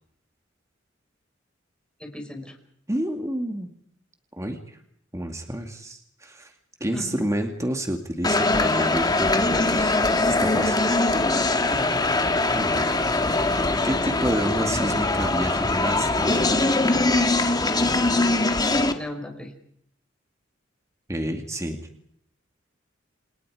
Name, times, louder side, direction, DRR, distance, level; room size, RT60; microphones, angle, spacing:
voice 1, 2.0-2.6 6.9-7.2 11.6-12.0 18.9-19.5, left 1 dB, 5° left, 4 dB, 5.1 m, -36 dB
voice 2, 2.9-3.7 4.3-4.8 5.1-6.5 6.8-10.0 10.3-10.8 12.5-12.9 13.1-16.6 21.1-21.8, right 1 dB, 15° right, 4 dB, 2.3 m, -29 dB
sound 1, 8.2-18.9, left 2 dB, 20° left, 1.8 m, -22 dB
29.5 x 28.0 x 5.0 m, 0.66 s
head